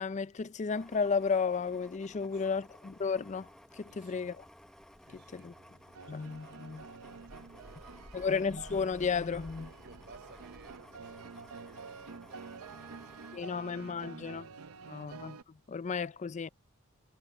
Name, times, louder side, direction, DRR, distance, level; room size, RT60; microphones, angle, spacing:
voice 1, 0.0-3.5 3.8-4.4 5.3-5.5 6.1-6.8 8.1-9.7 13.3-14.5 14.9-16.5, left 5 dB, 35° left, 0.4 m, -33 dB
sound 1, 0.7-14.4 14.8-15.0, equal, 5° left, 0.8 m, -55 dB
voice 2, 2.2-2.6 3.9-4.3 5.0-5.5 6.1-8.4 9.8-14.0 14.3-15.1, right 3 dB, 55° right, 5.9 m, -61 dB
sound 2, 5.5-15.4, right 5 dB, 70° right, 0.6 m, -49 dB
head